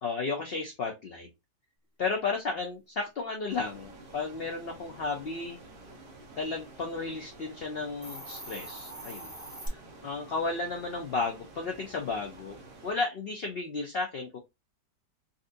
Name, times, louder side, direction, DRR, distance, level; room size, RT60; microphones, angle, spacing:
voice 1, 0.0-1.3 2.0-5.6 6.4-9.3 9.7-14.4, left 4 dB, 75° left, 2 dB, 0.5 m, -33 dB
sound 1, 3.5-12.9, right 2 dB, 40° right, 0.8 m, -50 dB
Hiss, 7.9-9.7, right 1 dB, 15° right, 0.5 m, -43 dB
4.0 x 2.5 x 2.5 m, 0.22 s
omnidirectional pair, 1.8 m